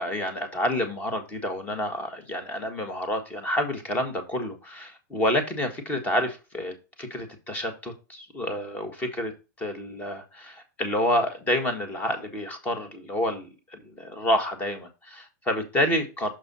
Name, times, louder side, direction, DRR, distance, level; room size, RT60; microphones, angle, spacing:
voice 1, 0.0-9.3 9.6-16.3, left 1 dB, 15° left, 1.5 m, -29 dB
6.4 x 5.4 x 4.2 m
supercardioid pair, 155°, 10 cm